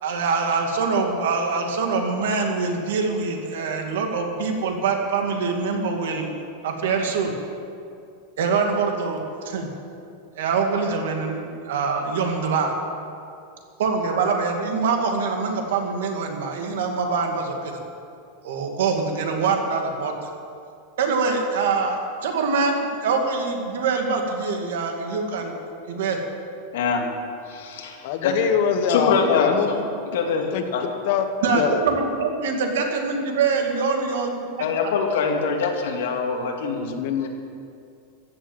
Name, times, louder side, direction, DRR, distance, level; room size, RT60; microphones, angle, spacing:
voice 1, 0.0-6.3 6.6-7.3 8.4-9.7 10.3-12.7 13.8-17.8 18.4-20.3 21.0-25.6 25.9-26.2 31.4-34.3, right 4 dB, 75° right, 3 dB, 2.3 m, -24 dB
voice 2, 26.7-27.1 27.5-28.3 28.9-29.8 30.1-30.4 30.7-30.8 34.6-36.9, left 5 dB, 75° left, 1 dB, 2.4 m, -24 dB
voice 3, 28.0-29.9 30.5-30.6 31.0-31.3 31.5-31.8 37.0-37.3, left 8 dB, 45° left, 7 dB, 1.2 m, -23 dB
14.5 x 8.8 x 7.9 m, 2.4 s
supercardioid pair, 175°, 0 cm